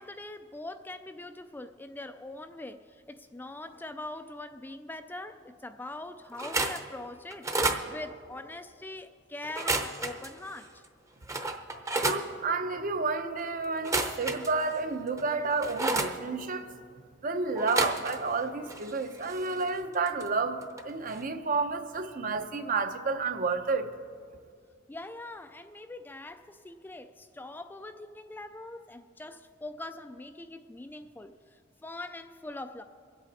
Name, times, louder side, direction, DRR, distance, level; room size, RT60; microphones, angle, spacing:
voice 1, 0.0-10.8 24.9-32.8, left 2 dB, 10° left, 9 dB, 0.3 m, -43 dB
sound 1, 6.3-6.8 7.3-7.8 9.4-10.3 10.8-10.9 11.3-12.2 13.7-14.8 15.2-16.1 17.6-18.4 18.7-20.3 20.6-20.8 21.1-21.2, right 2 dB, 15° right, 0.8 m, -31 dB
voice 2, 12.0-16.7 17.2-23.9, right 4 dB, 45° right, 8 dB, 0.7 m, -30 dB
24.0 x 8.2 x 4.1 m, 2.2 s
head